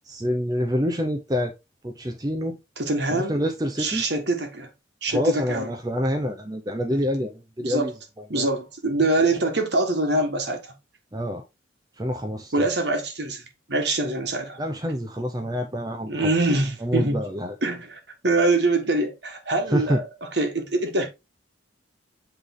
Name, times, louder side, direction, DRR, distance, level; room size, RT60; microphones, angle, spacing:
voice 1, 0.1-1.5 1.8-2.6 3.1-4.0 5.1-7.9 8.4-8.5 11.1-11.4 12.0-12.5 14.6-16.3 16.8-17.5 19.7-20.0, equal, 20° right, 0.6 m, -26 dB
voice 2, 2.8-3.4 3.8-4.7 5.0-5.7 6.9-7.0 7.6-7.9 8.3-10.7 12.5-14.6 16.1-17.2 17.6-21.1, right 2 dB, 60° right, 1.4 m, -24 dB
8.3 x 3.4 x 3.6 m
head